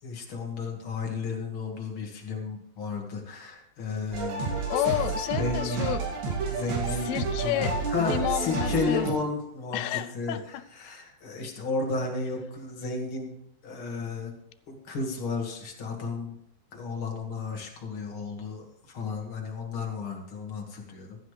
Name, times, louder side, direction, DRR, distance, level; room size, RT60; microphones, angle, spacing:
voice 1, 0.0-5.0 5.4-5.9 6.5-7.1 7.4-9.8 10.1-13.3 13.6-14.3 14.7-16.3 16.7-21.3, left 4 dB, 45° left, 1 dB, 2.1 m, -33 dB
sound 1, 4.1-9.1, right 4 dB, 70° right, 4.0 m, -30 dB
voice 2, 4.7-6.1 7.0-9.1 9.7-10.4, left 13 dB, 90° left, 12 dB, 2.6 m, -30 dB
15.5 x 11.5 x 3.3 m, 0.76 s
omnidirectional pair, 4.4 m